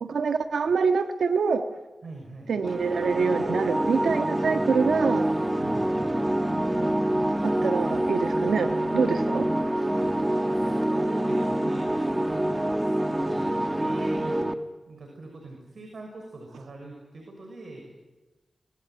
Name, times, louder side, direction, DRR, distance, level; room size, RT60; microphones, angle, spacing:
voice 1, 0.0-1.6 2.5-5.3 7.4-9.5, right 5 dB, 85° right, 7 dB, 1.5 m, -25 dB
voice 2, 2.0-2.5 5.6-6.0 9.9-10.1 10.5-14.4 14.9-17.9, right 2 dB, 65° right, 2 dB, 6.4 m, -43 dB
sound 1, 2.6-14.5, right 1 dB, 20° right, 1.9 m, -26 dB
25.5 x 20.5 x 9.5 m, 1.2 s
cardioid pair, 70°, 0 cm